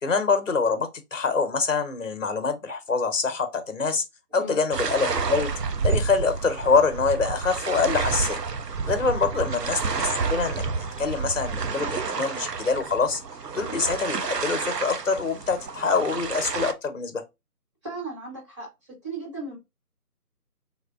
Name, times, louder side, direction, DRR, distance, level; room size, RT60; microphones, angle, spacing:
voice 1, 0.0-4.0 4.3-5.5 5.8-8.4 8.8-13.2 13.5-17.2, left 4 dB, 55° left, 0.9 m, -25 dB
sound 1, 4.7-16.7, right 5 dB, 85° right, 0.7 m, -29 dB
voice 2, 17.8-19.6, right 3 dB, 20° right, 1.7 m, -36 dB
3.7 x 2.7 x 2.4 m
figure-of-eight pair, 160°, 47 cm